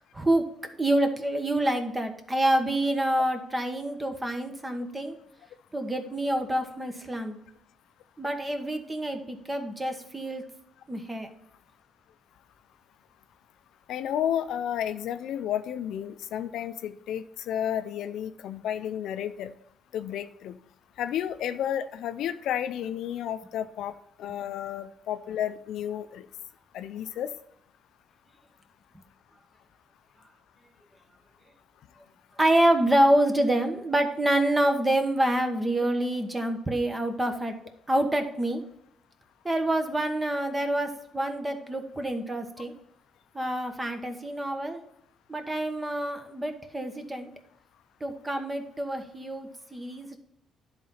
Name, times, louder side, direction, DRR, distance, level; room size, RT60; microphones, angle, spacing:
voice 1, 0.1-5.2 5.7-7.4 8.2-10.4 10.9-11.3 32.4-37.5 37.9-38.6 39.4-42.7 43.3-44.8 45.3-47.3 48.0-50.2, right 1 dB, 15° right, 6 dB, 1.2 m, -27 dB
voice 2, 13.9-19.5 19.9-20.6 21.0-23.9 24.2-26.3 26.7-27.3, left 10 dB, 80° left, 11 dB, 0.4 m, -32 dB
10.5 x 4.0 x 5.7 m, 0.73 s
cardioid pair, 90°, 0 cm